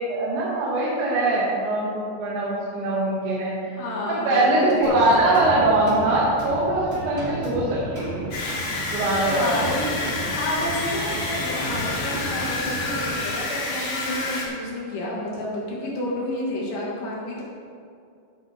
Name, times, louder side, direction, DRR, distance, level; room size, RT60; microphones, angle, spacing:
voice 1, 0.0-3.7 4.1-8.3 8.9-9.6, right 2 dB, 85° right, -7 dB, 3.9 m, -22 dB
voice 2, 3.8-5.4 9.2-9.9 10.3-17.4, left 1 dB, 70° left, -4 dB, 3.8 m, -30 dB
sound 1, 4.8-13.2, right 1 dB, 20° right, 1.6 m, -34 dB
sound 2, 8.3-14.5, left 3 dB, 50° left, 1.8 m, -29 dB
15.5 x 7.5 x 3.6 m, 2.4 s
omnidirectional pair, 5.1 m